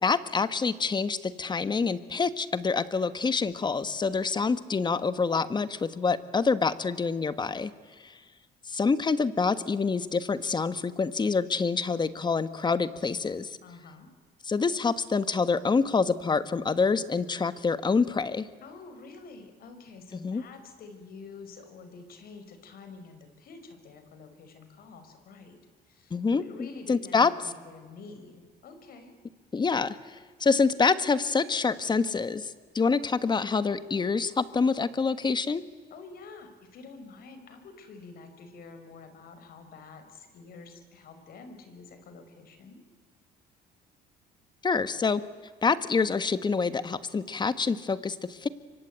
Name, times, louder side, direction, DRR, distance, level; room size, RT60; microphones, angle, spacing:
voice 1, 0.0-7.7 8.7-13.5 14.5-18.5 20.2-20.4 26.1-27.3 29.5-35.6 44.6-45.2 45.6-48.5, left 4 dB, 25° left, 13 dB, 1.4 m, -26 dB
voice 2, 13.6-14.1 18.6-25.6 25.9-29.1 35.9-42.8, left 4 dB, 60° left, 8 dB, 5.2 m, -48 dB
26.5 x 24.0 x 9.0 m, 1.5 s
cardioid pair, 110°, 17 cm